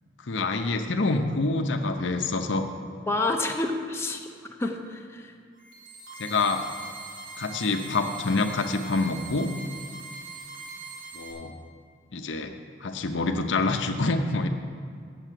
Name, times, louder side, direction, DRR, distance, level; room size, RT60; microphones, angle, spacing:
voice 1, 0.2-2.6 6.2-6.6 7.4-9.5 11.1-11.5 12.1-12.5 12.8-14.5, left 3 dB, 70° left, 5 dB, 0.7 m, -26 dB
voice 2, 3.1-4.3 4.6-5.3, left 2 dB, 15° left, 2 dB, 0.6 m, -28 dB
sound 1, 5.6-11.3, right 3 dB, 80° right, 2.1 m, -42 dB
7.9 x 7.3 x 7.5 m, 2.2 s
head